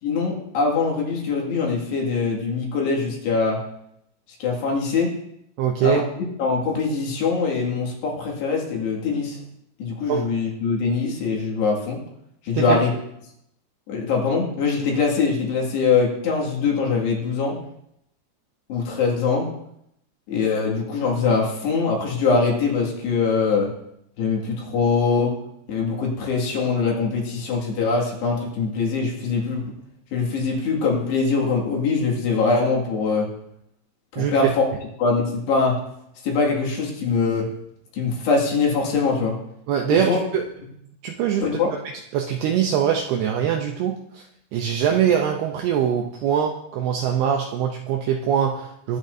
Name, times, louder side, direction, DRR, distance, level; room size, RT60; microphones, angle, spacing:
voice 1, 0.0-3.6 4.4-5.1 5.8-6.0 6.4-9.4 9.8-12.0 12.4-12.9 13.9-17.6 18.7-19.5 20.3-23.7 24.2-25.4 25.7-29.7 30.1-33.3 34.1-34.7 35.0-35.8 36.2-37.5 37.9-39.4 39.9-40.2 41.4-41.7, left 4 dB, 65° left, -2 dB, 4.1 m, -22 dB
voice 2, 5.6-6.0 10.1-10.2 12.5-12.8 34.2-34.5 39.7-40.4 41.0-41.5 42.1-44.2 44.5-49.0, right 9 dB, 80° right, 3 dB, 2.3 m, -22 dB
21.5 x 9.0 x 2.7 m, 0.78 s
omnidirectional pair, 5.4 m